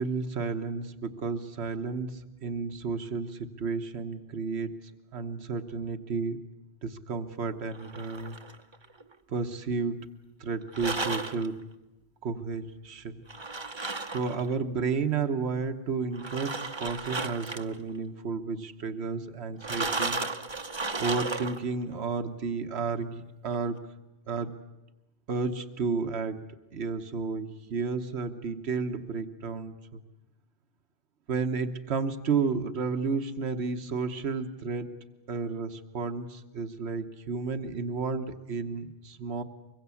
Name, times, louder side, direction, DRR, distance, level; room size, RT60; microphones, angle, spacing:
voice 1, 0.0-4.8 5.1-6.4 6.8-8.4 9.3-10.1 10.4-11.6 12.2-13.2 14.1-20.2 21.0-23.8 24.3-24.6 25.3-26.4 26.7-30.0 31.3-34.9 35.3-39.4, right 4 dB, 75° right, 7 dB, 1.4 m, -32 dB
sound 1, 7.7-9.1 10.7-11.5 13.3-14.5 16.1-17.8 19.6-21.7, right 3 dB, 25° right, 1.0 m, -34 dB
24.5 x 22.5 x 8.4 m, 0.99 s
omnidirectional pair, 1.1 m